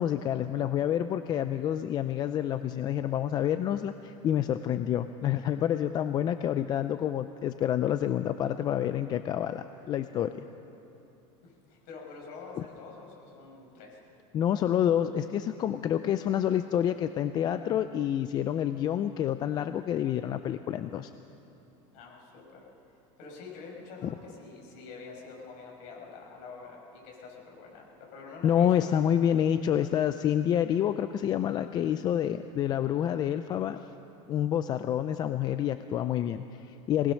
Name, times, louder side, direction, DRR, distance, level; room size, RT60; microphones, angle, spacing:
voice 1, 0.0-10.4 14.3-21.1 28.4-33.8 34.3-37.1, left 10 dB, 25° left, 10 dB, 0.4 m, -28 dB
voice 2, 11.4-14.0 21.9-22.7 23.2-29.1, left 4 dB, 50° left, -1 dB, 5.9 m, -46 dB
21.5 x 19.5 x 6.4 m, 2.9 s
supercardioid pair, 160°, 16 cm